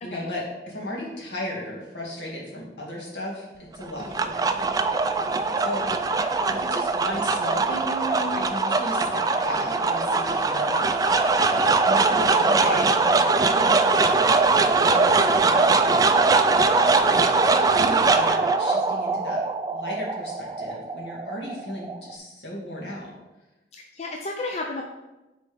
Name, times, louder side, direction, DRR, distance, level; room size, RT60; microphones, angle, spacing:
voice 1, 0.0-4.6 5.6-5.9 6.5-10.8 11.5-14.1 14.7-16.1 16.9-19.4 19.7-23.1, left 1 dB, 70° left, -4 dB, 2.3 m, -35 dB
sound 1, 3.8-22.2, right 3 dB, 20° right, 0.3 m, -21 dB
voice 2, 23.7-24.8, left 2 dB, 35° left, 1 dB, 0.5 m, -34 dB
10.0 x 4.2 x 3.5 m, 1.1 s
head